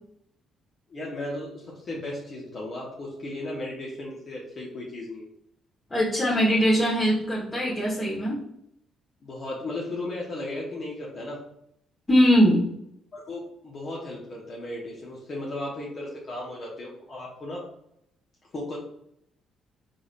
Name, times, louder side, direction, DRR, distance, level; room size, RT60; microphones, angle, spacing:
voice 1, 0.9-5.2 9.2-11.5 13.1-17.6 18.5-18.8, left 1 dB, 50° left, -4 dB, 1.0 m, -35 dB
voice 2, 5.9-8.4 12.1-12.6, equal, 25° left, -7 dB, 1.4 m, -21 dB
3.7 x 3.4 x 2.5 m, 0.76 s
hypercardioid pair, 55°, 0 cm